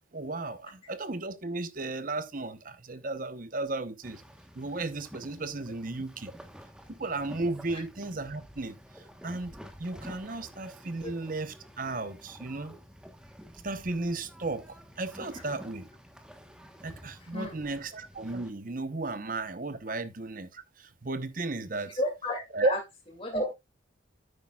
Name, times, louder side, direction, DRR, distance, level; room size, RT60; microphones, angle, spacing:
voice 1, 0.1-4.2 4.5-6.3 6.9-12.8 13.6-15.9 16.8-22.0 22.5-22.7, right 2 dB, 45° right, 0.9 m, -34 dB
sound 1, 4.0-18.5, equal, 5° right, 1.1 m, -50 dB
voice 2, 17.2-17.6 22.0-22.8 23.2-23.5, left 1 dB, 30° left, 2.4 m, -32 dB
9.7 x 9.0 x 2.3 m
head